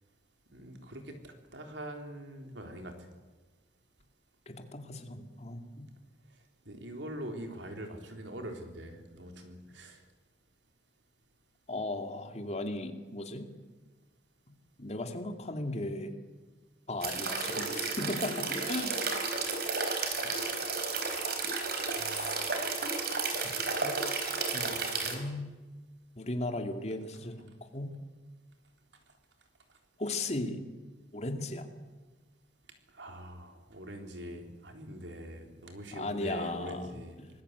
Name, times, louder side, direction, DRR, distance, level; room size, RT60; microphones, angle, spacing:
voice 1, 0.5-2.9 6.7-10.0 21.9-22.4 32.9-37.2, equal, 90° right, 4 dB, 3.8 m, -43 dB
voice 2, 4.5-5.8 11.7-13.5 14.8-16.2 16.9-19.0 22.1-22.4 23.4-25.5 26.2-27.9 30.0-30.6 31.1-31.7 35.9-36.9 37.2-37.3, left 2 dB, 40° left, 5 dB, 2.5 m, -37 dB
sound 1, 17.0-25.1, right 4 dB, 60° right, 4.2 m, -32 dB
25.0 x 20.0 x 8.2 m, 1.3 s
head